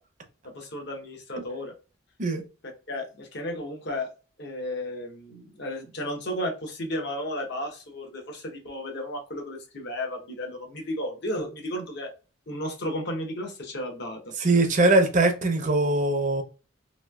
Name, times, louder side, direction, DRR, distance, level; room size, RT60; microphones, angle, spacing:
voice 1, 0.4-1.7 2.9-4.1 4.4-12.1 12.5-14.3, left 1 dB, 55° left, 0.9 m, -33 dB
voice 2, 14.4-16.4, right 2 dB, 40° right, 0.6 m, -21 dB
3.0 x 2.9 x 2.3 m
head